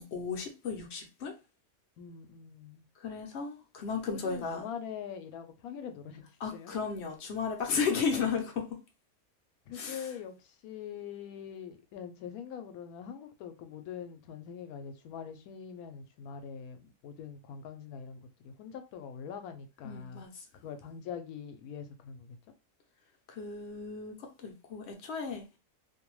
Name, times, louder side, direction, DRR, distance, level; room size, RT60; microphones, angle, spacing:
voice 1, 0.0-1.3 3.0-4.6 6.4-8.6 9.7-10.1 19.8-20.4 23.3-25.4, left 5 dB, 60° left, 0.7 m, -34 dB
voice 2, 2.0-2.8 4.1-6.7 9.7-20.2 20.6-22.4, left 7 dB, 80° left, 1.0 m, -43 dB
2.6 x 2.2 x 3.0 m
omnidirectional pair, 1.6 m